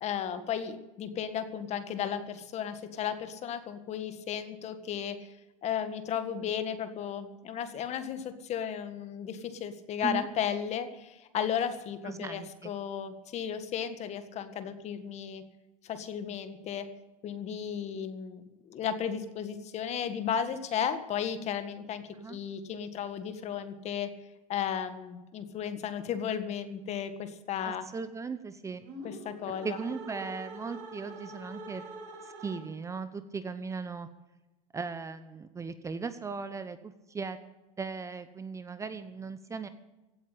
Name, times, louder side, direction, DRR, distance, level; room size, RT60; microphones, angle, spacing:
voice 1, 0.0-5.2 5.6-15.4 15.8-16.9 17.2-22.0 22.3-24.1 24.5-27.8 29.0-29.8, left 8 dB, 40° left, 9 dB, 1.7 m, -34 dB
voice 2, 12.0-12.7 22.1-22.4 27.6-28.9 29.6-31.8 32.2-34.1 34.7-37.4 37.8-39.7, right 5 dB, 15° right, 11 dB, 0.8 m, -38 dB
sound 1, 28.8-33.0, right 2 dB, 60° right, 4.8 m, -45 dB
16.5 x 8.5 x 8.6 m, 1.1 s
supercardioid pair, 120°, 18 cm